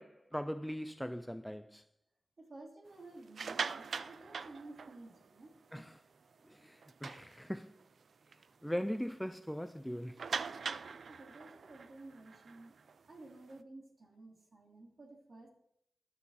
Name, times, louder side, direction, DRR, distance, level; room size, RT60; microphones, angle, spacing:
voice 1, 0.0-1.8 5.7-6.0 6.5-7.8 8.6-10.2, equal, ahead, 0.3 m, -40 dB
voice 2, 2.4-5.9 11.1-12.8 13.1-15.5, right 2 dB, 35° right, 2.6 m, -53 dB
sound 1, 3.2-5.3 5.8-6.0 6.3-6.4 6.8-7.8 8.3-8.4 8.8-8.9 10.2-13.5, right 5 dB, 60° right, 0.5 m, -42 dB
13.0 x 12.0 x 4.1 m
wide cardioid pair, 150°, 0 cm